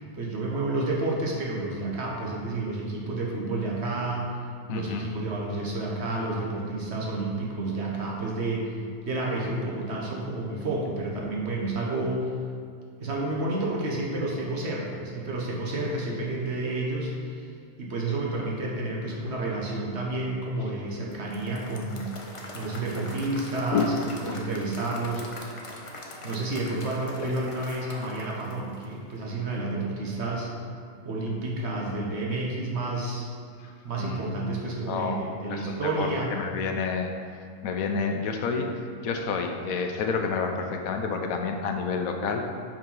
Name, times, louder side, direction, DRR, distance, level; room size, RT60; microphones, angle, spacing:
voice 1, 0.0-4.3 4.7-8.7 9.0-12.3 13.0-17.5 17.8-22.2 22.5-23.9 24.2-25.5 26.2-30.5 31.0-33.3 33.8-36.3, right 2 dB, 50° right, -3 dB, 1.2 m, -30 dB
voice 2, 4.7-5.0 23.7-23.9 24.3-24.4 27.2-27.3 33.6-33.7 34.0-34.5 34.9-35.2 35.5-37.1 37.6-42.4, left 5 dB, 80° left, 4 dB, 1.1 m, -29 dB
Applause / Crowd, 21.1-29.3, left 1 dB, 40° left, 0.5 m, -43 dB
5.3 x 5.1 x 5.4 m, 2.2 s
omnidirectional pair, 1.5 m